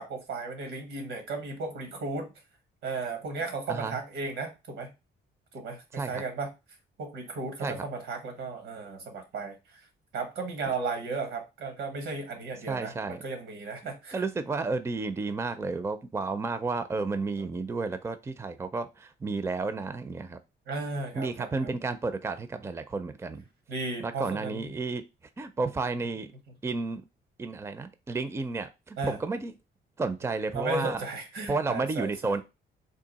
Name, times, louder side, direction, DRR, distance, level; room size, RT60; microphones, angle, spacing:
voice 1, 0.0-2.3 2.8-4.9 5.5-6.5 7.0-9.8 10.1-14.3 20.7-21.7 23.7-24.7 29.0-29.2 30.5-32.3, right 3 dB, 85° right, 5 dB, 1.2 m, -35 dB
voice 2, 3.7-4.0 5.9-6.2 7.6-7.8 12.7-13.2 13.8-20.4 21.1-23.5 24.0-25.0 25.4-26.3 26.6-27.0 27.4-29.5 30.0-31.0 31.5-32.4, right 3 dB, 15° right, 11 dB, 0.4 m, -32 dB
3.7 x 2.4 x 4.0 m, 0.26 s
cardioid pair, 90°, 20 cm